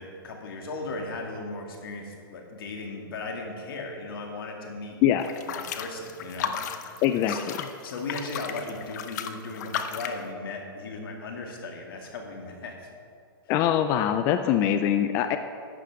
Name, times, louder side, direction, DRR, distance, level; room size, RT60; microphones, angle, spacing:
voice 1, 0.0-5.0 5.5-7.4 7.8-12.9, left 3 dB, 65° left, 1 dB, 2.4 m, -37 dB
sound 1, 5.2-10.2, left 8 dB, 45° left, 0.8 m, -34 dB
voice 2, 7.0-7.4 13.5-15.4, left 10 dB, 20° left, 8 dB, 0.3 m, -23 dB
11.5 x 8.4 x 4.9 m, 2.4 s
hypercardioid pair, 155°, 13 cm